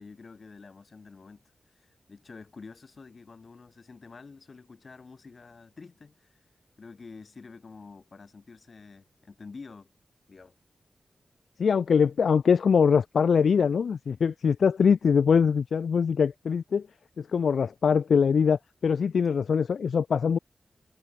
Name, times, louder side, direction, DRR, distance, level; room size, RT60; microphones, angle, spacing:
voice 1, 0.0-1.4 1.7-6.4 6.8-9.9 10.3-10.6 14.8-15.1 19.3-19.4, left 4 dB, 55° left, 4.0 m, -48 dB
voice 2, 11.6-16.8 17.2-20.4, left 6 dB, 85° left, 0.5 m, -23 dB
wide cardioid pair, 90°, 0 cm